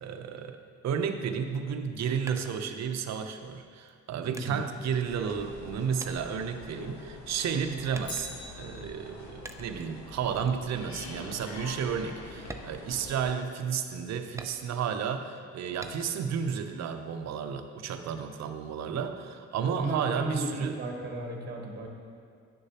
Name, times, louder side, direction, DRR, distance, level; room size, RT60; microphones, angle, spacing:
voice 1, 0.0-20.8, right 7 dB, 60° right, 7 dB, 0.6 m, -32 dB
sound 1, 1.8-3.2 3.9-5.7 6.0-7.2 7.9-8.6 9.5-9.9 10.4-10.6 11.1-11.2 11.6-11.8 12.4-13.6 14.4-15.0 15.8-16.3 16.7-17.6, right 2 dB, 10° right, 0.4 m, -47 dB
voice 2, 4.3-4.6 19.7-21.9, right 2 dB, 35° right, 1 dB, 1.2 m, -34 dB
sound 2, 5.0-13.3, left 2 dB, 65° left, 1.1 m, -45 dB
Bicycle, 8.0-9.4 17.7-17.8, left 4 dB, 35° left, 0.9 m, -45 dB
10.0 x 6.6 x 2.9 m, 2.2 s
cardioid pair, 90°, 30 cm